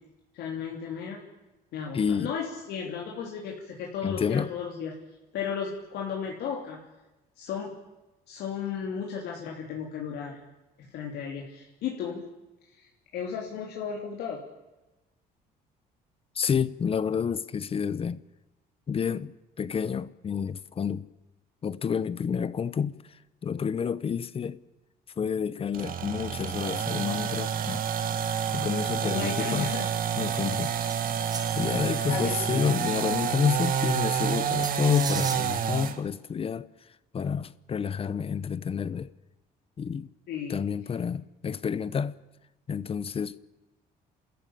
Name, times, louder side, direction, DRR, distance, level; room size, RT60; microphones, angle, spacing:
voice 1, 0.3-1.2 1.7-4.9 5.3-6.8 7.4-7.7 8.3-10.4 10.9-12.3 12.7-14.4 29.0-29.9 32.1-32.4 40.3-40.6, left 7 dB, 75° left, 3.2 m, -34 dB
voice 2, 1.9-2.3 4.0-4.5 16.4-18.2 18.9-21.1 21.6-24.6 25.2-27.8 28.5-29.8 30.2-30.7 31.6-36.7 37.1-39.1 39.8-40.1 40.5-42.2 42.7-43.4, left 7 dB, 35° left, 0.8 m, -29 dB
sound 1, 25.7-36.0, right 8 dB, 55° right, 1.6 m, -29 dB
sound 2, 30.9-31.8 34.6-35.4, right 4 dB, 25° right, 2.0 m, -38 dB
28.5 x 14.0 x 8.6 m
cardioid pair, 110°, 17 cm